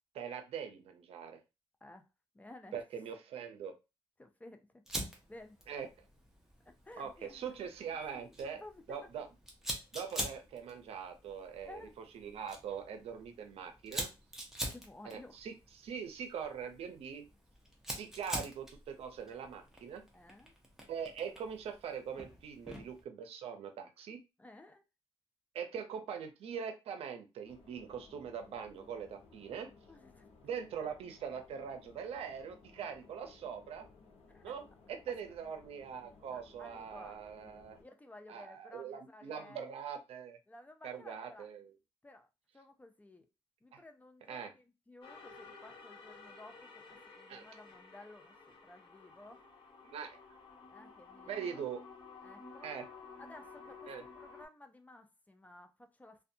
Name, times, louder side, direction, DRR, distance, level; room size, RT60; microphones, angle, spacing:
voice 1, 0.1-1.4 2.7-3.8 5.7-5.9 7.0-8.6 8.9-9.3 9.9-11.8 12.1-14.1 15.0-17.3 18.0-20.0 20.9-24.2 25.5-29.7 30.4-33.9 34.4-34.6 34.9-37.8 38.3-40.4 40.8-41.7 43.7-43.8 44.3-44.5 47.3-47.5 49.8-50.2 51.3-51.8 52.6-52.9 53.9-54.0, right 7 dB, 70° right, 0.6 m, -42 dB
voice 2, 2.3-2.8 4.2-4.8 5.3-5.6 6.7-7.4 8.0-9.0 11.7-11.9 14.7-15.4 20.1-20.5 24.4-24.8 29.9-30.3 34.3-34.5 36.3-37.2 37.8-39.6 40.5-41.5 42.0-42.3 42.5-43.3 43.6-46.8 47.2-49.4 50.7-51.6 52.2-52.7 53.2-53.9 54.1-56.2, left 2 dB, 15° left, 0.4 m, -54 dB
Fire, 4.9-23.0, equal, 5° right, 0.8 m, -46 dB
sound 1, 27.4-37.8, left 4 dB, 70° left, 0.6 m, -60 dB
sound 2, 45.0-54.5, left 4 dB, 55° left, 1.0 m, -53 dB
2.5 x 2.2 x 2.6 m
cardioid pair, 95°, 10 cm